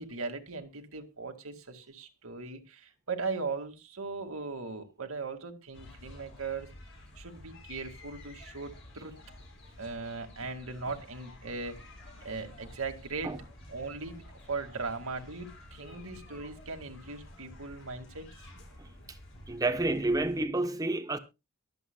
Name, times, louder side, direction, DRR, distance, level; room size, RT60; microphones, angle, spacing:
voice 1, 0.0-6.7 7.2-9.1 9.8-11.8 12.2-13.3 13.7-18.5, right 4 dB, 75° right, 2.1 m, -39 dB
sound 1, 5.7-20.4, left 1 dB, 60° left, 6.4 m, -51 dB
voice 2, 19.5-21.2, right 2 dB, 15° right, 0.9 m, -29 dB
23.5 x 8.0 x 2.3 m
head